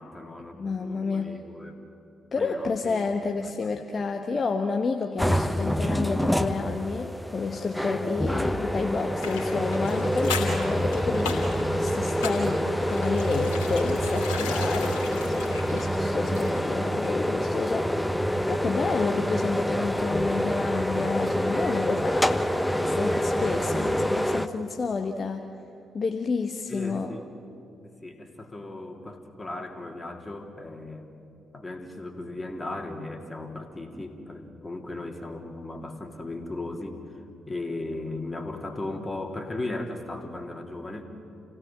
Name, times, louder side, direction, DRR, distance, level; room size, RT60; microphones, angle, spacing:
voice 1, 0.0-1.8 2.4-3.1 3.6-3.7 7.7-8.0 26.7-27.3 27.8-31.1 31.5-41.0, left 2 dB, 25° left, 3 dB, 3.2 m, -37 dB
voice 2, 0.6-1.4 2.3-22.4 22.8-25.5 25.9-27.1, left 4 dB, 45° left, 4 dB, 1.2 m, -30 dB
sound 1, 5.2-24.5, equal, 5° left, 1.0 m, -27 dB
sound 2, 9.2-16.8 17.0-17.2, left 5 dB, 75° left, 2.9 m, -37 dB
28.5 x 16.5 x 7.6 m, 2.6 s
figure-of-eight pair, 40°, 0 cm